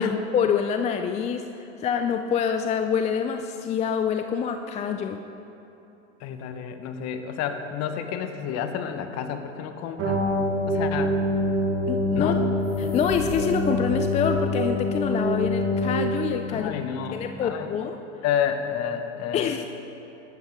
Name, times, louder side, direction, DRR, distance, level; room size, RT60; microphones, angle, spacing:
voice 1, 0.0-5.2 11.9-12.4 12.8-16.8 17.1-18.0 19.3-19.7, left 7 dB, 20° left, 6 dB, 0.4 m, -26 dB
voice 2, 6.2-10.2 10.7-11.3 12.1-12.5 16.5-17.7 18.2-19.7, left 8 dB, 40° left, 8 dB, 1.3 m, -30 dB
sound 1, 10.0-17.1, left 1 dB, 40° right, 2.9 m, -25 dB
sound 2, 12.5-14.0, equal, 75° left, 3.5 m, -36 dB
18.5 x 12.5 x 3.7 m, 3.0 s
hypercardioid pair, 100°, 39 cm